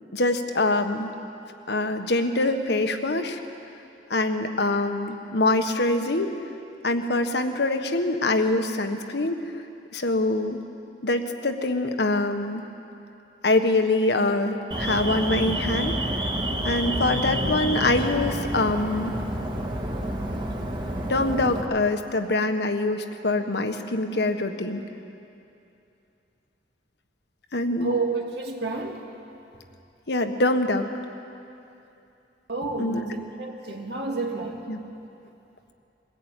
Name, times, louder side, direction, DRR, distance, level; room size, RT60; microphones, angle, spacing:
voice 1, 0.1-1.1 1.7-3.4 4.1-6.3 6.8-9.4 9.9-10.6 11.0-12.6 13.4-16.0 16.6-19.1 21.1-24.8 27.5-28.0 30.1-30.9 32.8-33.0 34.7-34.8, left 2 dB, 65° left, 7 dB, 1.4 m, -24 dB
Alarm, 14.7-21.6, right 1 dB, 25° right, 1.8 m, -28 dB
voice 2, 27.8-29.1 32.5-34.7, right 3 dB, 65° right, 0 dB, 2.2 m, -30 dB
22.5 x 16.0 x 9.1 m, 2.8 s
head